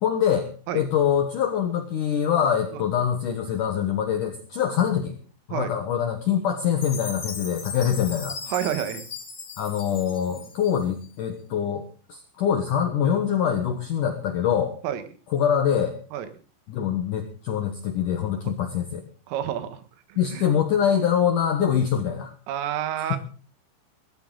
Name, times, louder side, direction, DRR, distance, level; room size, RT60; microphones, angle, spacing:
voice 1, 0.0-5.2 5.5-8.4 9.6-14.7 15.3-15.9 16.7-19.0 20.2-22.3 23.0-23.2, left 8 dB, 80° left, 5 dB, 1.8 m, -24 dB
Chime, 6.8-11.1, left 4 dB, 35° left, 2.1 m, -38 dB
voice 2, 8.5-9.1 10.3-10.4 14.8-15.0 16.1-16.3 19.3-19.8 20.1-20.5 22.5-23.2, right 10 dB, 80° right, 10 dB, 4.1 m, -29 dB
19.0 x 13.5 x 3.9 m, 0.37 s
omnidirectional pair, 5.8 m